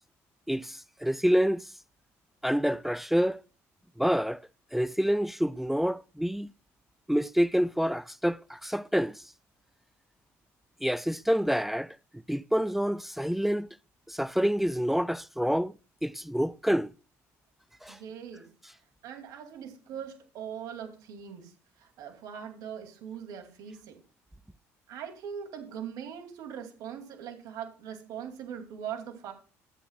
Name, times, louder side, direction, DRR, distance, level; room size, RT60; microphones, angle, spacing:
voice 1, 0.5-1.6 2.4-3.4 4.0-4.4 4.7-6.5 7.1-9.2 10.8-12.0 12.3-13.7 14.1-15.7 16.0-16.9 17.8-18.0, equal, 5° right, 0.3 m, -27 dB
voice 2, 17.8-18.4 19.0-24.0 24.9-29.3, right 8 dB, 70° right, 2.6 m, -41 dB
14.0 x 8.3 x 2.4 m
supercardioid pair, 85°, 6 cm